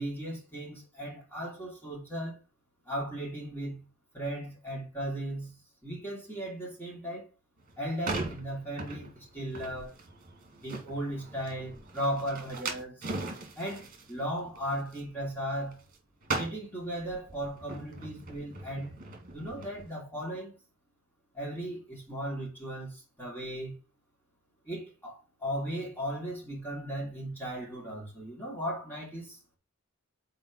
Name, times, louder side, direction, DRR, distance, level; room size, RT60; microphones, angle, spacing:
voice 1, 0.0-2.4 2.8-7.3 7.8-9.9 10.6-13.1 13.5-15.8 16.3-19.0 19.3-20.5 21.3-23.7 24.6-29.4, equal, 10° left, 3.0 m, -36 dB
sound 1, 7.6-19.9, right 3 dB, 40° right, 2.0 m, -40 dB
5.4 x 4.5 x 4.8 m
head